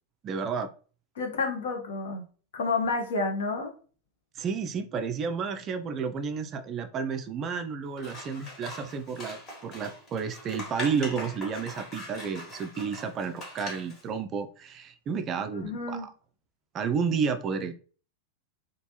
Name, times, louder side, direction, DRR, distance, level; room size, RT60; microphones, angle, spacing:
voice 1, 0.2-0.7 4.4-16.1 16.7-17.7, right 6 dB, 30° right, 8 dB, 0.3 m, -31 dB
voice 2, 1.2-2.2 2.5-3.7 15.6-16.1, left 3 dB, 60° left, 3 dB, 0.7 m, -30 dB
Scissors, 7.9-14.0, left 1 dB, 30° left, 1.3 m, -42 dB
3.1 x 2.3 x 2.8 m, 0.40 s
figure-of-eight pair, 90°, 0 cm